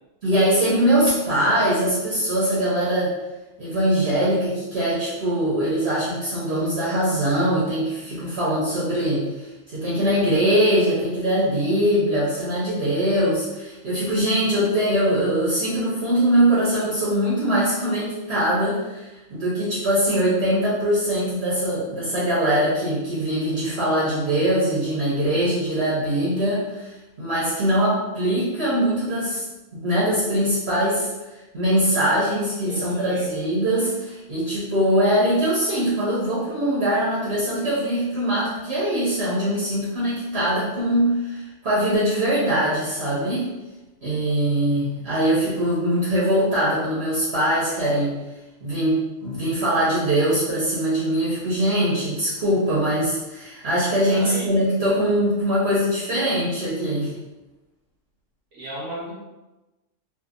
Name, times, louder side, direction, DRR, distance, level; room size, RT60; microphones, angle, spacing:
voice 1, 0.2-3.1 3.6-26.9 27.2-29.4 29.8-31.1 31.5-43.5 44.0-48.2 48.6-57.1, right 1 dB, 60° right, -9 dB, 1.1 m, -22 dB
voice 2, 32.6-33.3 54.1-54.5 58.5-59.1, right 1 dB, 80° right, -8 dB, 1.1 m, -35 dB
2.7 x 2.5 x 2.4 m, 1.1 s
omnidirectional pair, 1.3 m